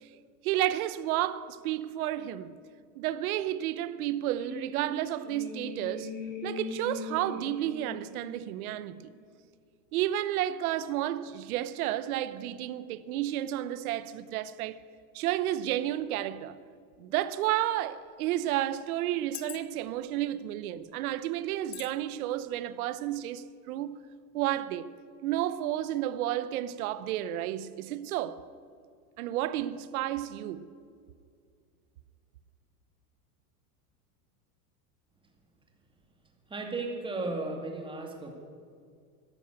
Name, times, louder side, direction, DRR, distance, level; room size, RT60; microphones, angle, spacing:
voice 1, 0.4-2.5 3.0-6.1 6.4-9.1 9.9-14.8 15.1-16.6 17.0-24.0 24.3-24.9 25.2-28.4 29.2-30.6, right 13 dB, 70° right, 1.0 m, -31 dB
sound 1, 4.4-9.2, left 3 dB, 20° left, 3.3 m, -41 dB
sound 2, 17.2-17.4 18.2-18.3 19.1-20.0 20.7-20.9 21.7-21.9 22.4-22.5, left 15 dB, 40° left, 1.0 m, -43 dB
voice 2, 36.5-38.3, right 3 dB, 10° right, 2.2 m, -35 dB
12.5 x 11.5 x 8.8 m
supercardioid pair, 140°, 45 cm